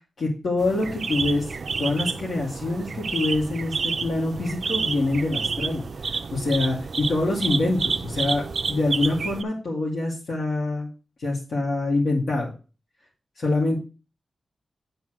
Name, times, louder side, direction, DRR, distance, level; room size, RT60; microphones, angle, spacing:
voice 1, 0.2-1.5 1.8-10.9 11.2-12.5 13.4-13.8, left 2 dB, 75° left, -5 dB, 2.3 m, -25 dB
sound 1, 0.6-9.4, right 5 dB, 60° right, 0.4 m, -30 dB
8.4 x 4.1 x 6.2 m, 0.34 s
wide cardioid pair, 110°, 0 cm